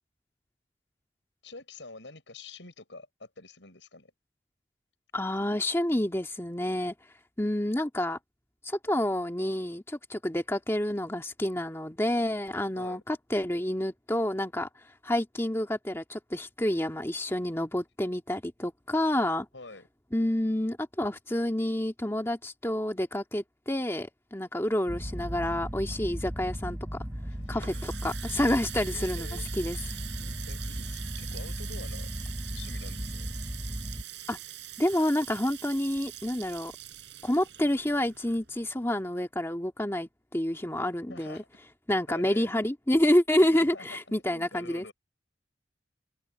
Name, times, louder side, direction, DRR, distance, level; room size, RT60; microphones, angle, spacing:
voice 1, 1.4-4.1 12.8-13.0 19.5-19.9 27.4-28.0 28.8-29.5 30.5-32.1 32.5-33.3 41.1-41.4 42.1-42.5 43.4-44.9, left 3 dB, 85° left, 6.9 m, -47 dB
voice 2, 5.1-6.9 7.4-8.2 8.6-19.5 20.1-26.8 27.5-29.8 34.3-34.4 34.8-36.7 37.2-41.4 41.9-44.9, left 1 dB, 15° left, 1.8 m, -28 dB
sound 1, 24.9-34.0, equal, 20° right, 3.2 m, -36 dB
Water tap faucet, 27.2-38.8, right 12 dB, 75° right, 6.6 m, -44 dB
head